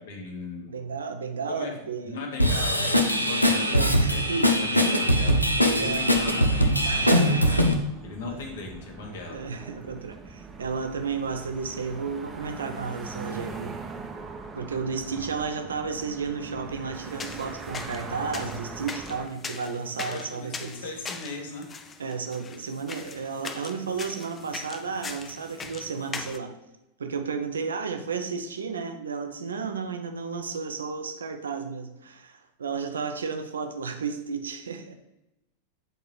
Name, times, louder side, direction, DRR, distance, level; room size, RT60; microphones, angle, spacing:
voice 1, 0.0-0.8 1.4-1.7 2.0-9.4 15.1-15.3 20.1-21.7, left 3 dB, 60° left, 2 dB, 1.3 m, -38 dB
voice 2, 0.7-2.2 3.7-5.1 5.6-6.1 6.8-7.9 8.3-8.4 9.3-13.8 14.5-20.8 22.0-26.6 27.0-35.0, right 5 dB, 70° right, 7 dB, 0.6 m, -33 dB
Drum kit / Drum, 2.4-7.7, equal, 90° left, 0.5 m, -22 dB
sound 1, 5.4-19.3, right 4 dB, 20° right, 0.7 m, -42 dB
sound 2, 16.9-26.4, left 4 dB, 20° left, 0.5 m, -40 dB
7.8 x 3.8 x 3.2 m, 0.93 s
figure-of-eight pair, 90°, 0 cm